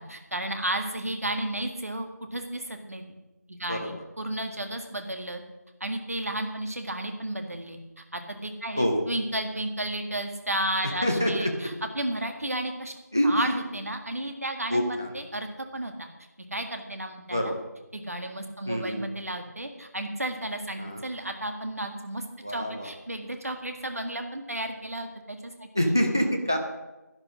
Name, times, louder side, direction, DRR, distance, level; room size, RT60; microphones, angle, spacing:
voice 1, 0.0-3.0 3.5-5.4 5.8-12.9 13.2-16.1 16.5-17.5 17.9-26.0, right 1 dB, 55° right, 5 dB, 1.9 m, -33 dB
voice 2, 11.0-11.5 13.1-13.6 14.7-15.1 17.3-17.5 18.7-19.0 20.8-21.0 22.4-22.9 25.7-26.6, equal, 15° right, 3 dB, 0.5 m, -26 dB
11.0 x 10.5 x 6.2 m, 1.1 s
figure-of-eight pair, 170°, 9 cm